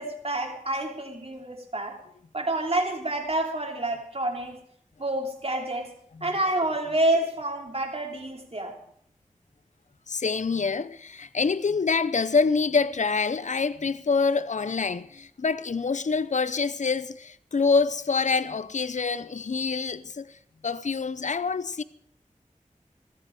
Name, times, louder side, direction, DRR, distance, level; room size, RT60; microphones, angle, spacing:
voice 1, 0.0-2.0 2.3-4.6 5.0-5.9 6.2-8.7, right 1 dB, 45° right, 3.4 m, -28 dB
voice 2, 10.1-20.3 20.6-21.8, left 4 dB, 65° left, 0.6 m, -26 dB
16.5 x 14.0 x 4.8 m
wide cardioid pair, 50°, 14 cm